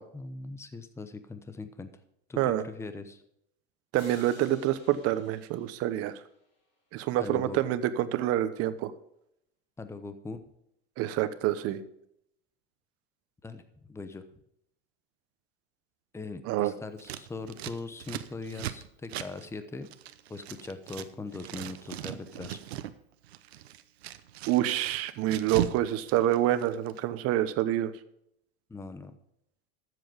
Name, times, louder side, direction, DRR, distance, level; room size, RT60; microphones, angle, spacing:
voice 1, 0.1-1.9 2.3-3.2 7.2-7.6 9.8-10.4 13.4-13.6 13.9-14.3 16.1-19.9 20.3-22.6 28.7-29.1, left 3 dB, 10° left, 10 dB, 0.9 m, -40 dB
sound 1, 3.9-6.6, left 3 dB, 50° left, 5.8 m, -55 dB
voice 2, 3.9-6.1 6.9-8.9 11.0-11.8 16.4-16.7 24.5-27.9, right 13 dB, 50° right, 13 dB, 1.1 m, -27 dB
Scissors, 17.0-21.1 21.3-22.9 23.2-25.8 26.1-27.0, right 12 dB, 85° right, 0.9 m, -38 dB
13.0 x 7.9 x 5.3 m, 0.76 s
supercardioid pair, 115°, 31 cm